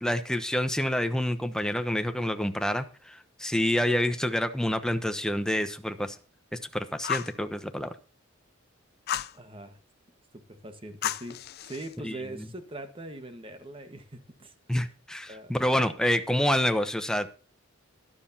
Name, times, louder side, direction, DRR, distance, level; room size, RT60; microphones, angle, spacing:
voice 1, 0.0-6.2 6.5-8.0 12.0-12.5 14.7-17.3, left 1 dB, 5° left, 0.9 m, -28 dB
Fire, 7.0-7.4 9.1-9.4 11.0-11.9, left 10 dB, 50° left, 0.4 m, -32 dB
voice 2, 9.3-9.8 10.3-11.4 11.6-14.5 15.3-15.5, right 1 dB, 25° right, 1.4 m, -42 dB
13.0 x 12.0 x 2.8 m
head